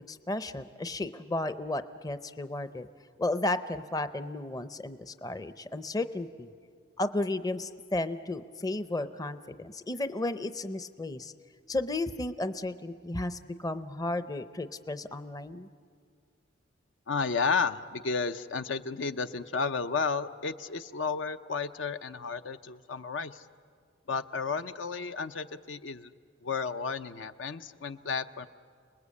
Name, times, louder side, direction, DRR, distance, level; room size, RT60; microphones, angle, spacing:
voice 1, 0.0-2.9 3.2-6.5 7.0-11.3 11.7-15.7, left 2 dB, 20° left, 11 dB, 0.6 m, -33 dB
voice 2, 17.1-23.4 24.1-26.1 26.4-28.5, left 5 dB, 65° left, 10 dB, 0.7 m, -32 dB
30.0 x 20.5 x 8.4 m, 2.1 s
head